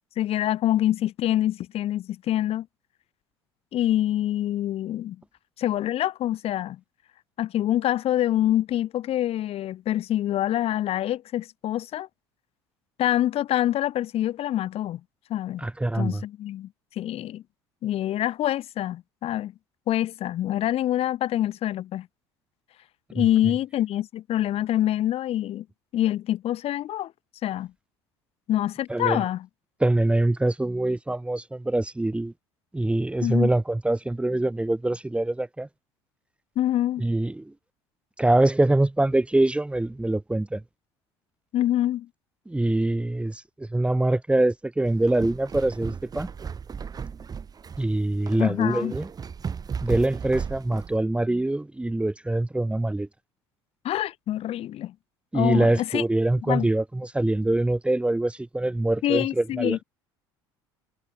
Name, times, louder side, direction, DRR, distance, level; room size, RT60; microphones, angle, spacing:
voice 1, 0.2-2.7 3.7-5.2 5.6-6.8 7.4-12.1 13.0-15.0 15.3-15.7 15.9-16.7 17.0-17.4 17.8-19.5 19.9-22.1 23.1-25.7 25.9-27.1 27.4-27.7 28.5-29.5 33.2-33.5 36.6-37.0 41.5-42.1 48.4-48.9 53.8-54.9 55.3-56.0 56.5-56.7 59.0-59.8, left 12 dB, 50° left, 3.9 m, -25 dB
voice 2, 15.6-16.2 23.1-23.2 28.9-29.2 29.8-32.3 32.7-35.7 37.0-37.5 38.2-40.6 42.5-46.3 47.8-49.1 49.8-53.1 55.3-59.8, right 2 dB, 10° right, 1.5 m, -24 dB
sound 1, 44.9-51.0, right 6 dB, 30° right, 1.7 m, -35 dB
figure-of-eight pair, 60°, 13 cm